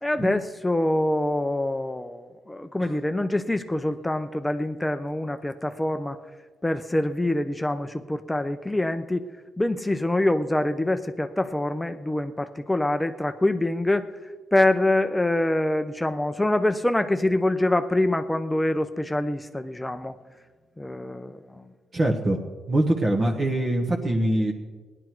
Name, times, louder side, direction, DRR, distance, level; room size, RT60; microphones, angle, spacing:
voice 1, 0.0-6.2 6.6-9.2 9.6-20.2 20.8-21.6, left 1 dB, 10° left, 9 dB, 0.6 m, -25 dB
voice 2, 21.9-22.4 22.7-24.5, right 1 dB, 35° right, -1 dB, 1.4 m, -23 dB
17.0 x 11.0 x 4.6 m, 1.4 s
cardioid pair, 90°, 0 cm